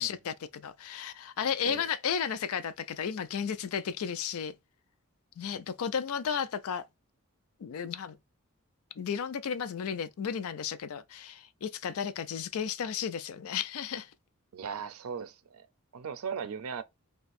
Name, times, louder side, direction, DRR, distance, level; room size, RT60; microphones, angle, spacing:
voice 1, 0.0-4.5 5.4-6.8 7.6-8.2 9.0-14.1, left 7 dB, 80° left, 0.4 m, -33 dB
voice 2, 14.5-15.7 15.9-16.8, right 6 dB, 80° right, 0.5 m, -38 dB
2.6 x 2.3 x 4.0 m
head